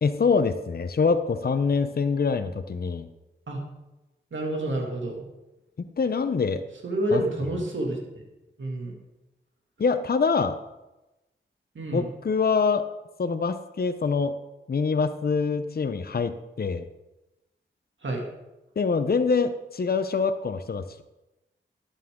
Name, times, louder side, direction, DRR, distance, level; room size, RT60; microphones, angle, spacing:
voice 1, 0.0-3.1 6.0-6.6 7.1-7.2 9.8-10.6 11.9-12.8 13.2-14.3 14.7-16.8 18.8-21.0, left 5 dB, 50° left, 9 dB, 0.7 m, -25 dB
voice 2, 4.3-5.3 6.8-8.0 8.6-8.9 11.7-12.1 18.0-18.2, right 1 dB, 70° right, 0 dB, 2.4 m, -28 dB
11.0 x 8.4 x 3.8 m, 0.99 s
cardioid pair, 45°, 21 cm